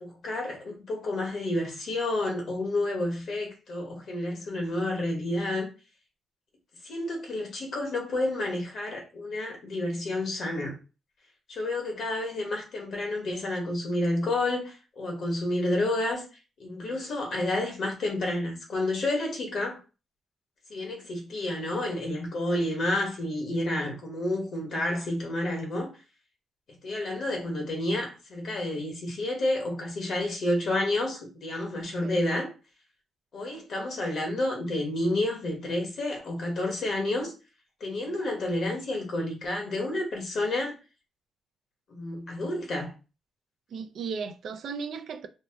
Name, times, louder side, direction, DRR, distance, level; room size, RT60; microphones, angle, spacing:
voice 1, 0.0-5.7 6.8-10.8 11.5-16.2 16.6-19.8 20.7-25.9 26.8-32.5 33.3-37.3 37.8-40.8 41.9-42.9, left 1 dB, 55° left, 1.0 m, -30 dB
voice 2, 43.7-45.3, right 5 dB, 60° right, 0.4 m, -36 dB
2.7 x 2.1 x 3.3 m
cardioid pair, 130°, 0 cm